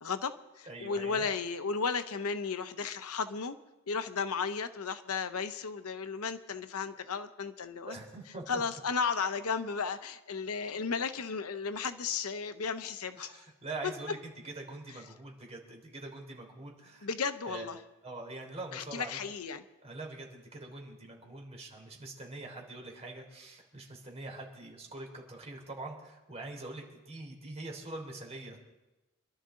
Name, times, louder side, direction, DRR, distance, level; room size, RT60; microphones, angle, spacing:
voice 1, 0.0-3.6 3.9-8.0 8.5-13.4 17.0-17.8 18.7-19.6, left 5 dB, 80° left, 10 dB, 0.8 m, -34 dB
voice 2, 0.7-1.3 7.8-8.6 13.1-17.1 17.4-17.7 18.0-19.2 19.8-28.6, right 2 dB, 30° right, 1 dB, 3.4 m, -44 dB
26.5 x 12.5 x 3.8 m, 1.0 s
head